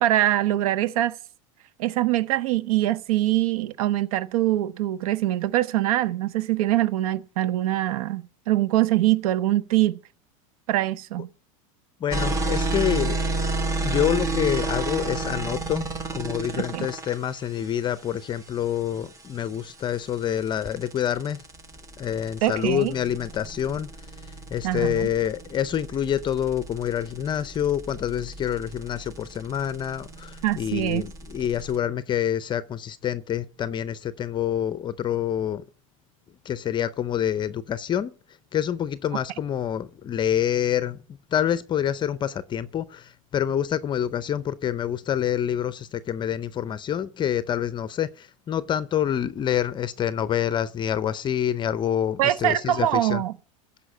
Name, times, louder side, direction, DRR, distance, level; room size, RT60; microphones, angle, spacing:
voice 1, 0.0-1.2 1.8-10.0 10.7-11.3 16.6-16.9 22.4-22.9 24.6-25.1 30.4-31.0 52.2-53.3, right 14 dB, 80° right, 0.7 m, -23 dB
voice 2, 12.0-13.2 13.8-21.4 22.0-23.9 24.5-35.6 36.5-38.1 38.5-41.0 41.3-43.0 43.3-53.2, left 10 dB, 25° left, 0.5 m, -27 dB
sound 1, 12.1-31.8, right 3 dB, 20° right, 1.4 m, -32 dB
15.0 x 5.6 x 7.9 m
supercardioid pair, 130°, 18 cm